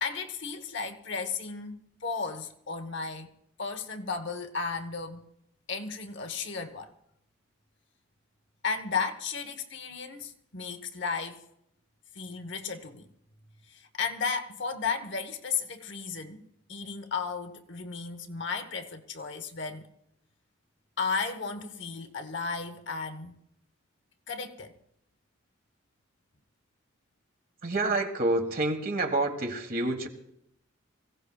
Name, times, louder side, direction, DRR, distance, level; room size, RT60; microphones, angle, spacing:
voice 1, 0.0-5.2 5.7-6.9 8.6-11.4 12.1-13.0 13.7-19.9 21.0-23.3 24.3-24.7, left 5 dB, 55° left, 1.0 m, -34 dB
voice 2, 27.6-30.1, right 2 dB, 45° right, 1.5 m, -28 dB
25.5 x 16.5 x 2.3 m
head